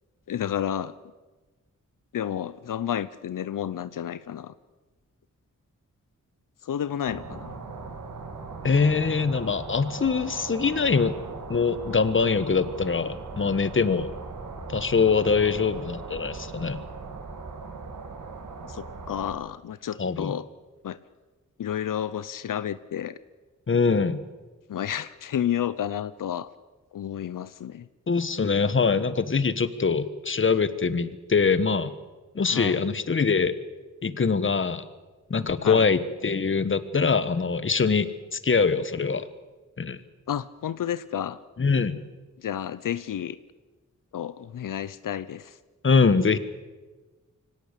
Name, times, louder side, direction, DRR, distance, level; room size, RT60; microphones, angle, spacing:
voice 1, 0.3-0.9 2.1-4.5 6.6-7.6 18.6-20.4 20.8-21.0 21.6-23.2 24.7-26.5 26.9-27.9 32.5-32.8 35.6-35.8 40.3-41.4 42.4-43.4 44.1-45.6, left 10 dB, 85° left, 15 dB, 0.7 m, -31 dB
sound 1, 7.0-19.3, right 3 dB, 85° right, 3.1 m, -39 dB
voice 2, 8.6-11.1 11.5-14.1 14.7-16.8 20.0-20.4 23.7-24.2 28.1-31.9 32.3-33.5 34.0-34.8 35.3-39.3 39.8-40.0 41.6-42.0 45.8-46.4, left 5 dB, 40° left, 13 dB, 1.4 m, -23 dB
24.5 x 17.5 x 8.3 m, 1.3 s
wide cardioid pair, 115°, 31 cm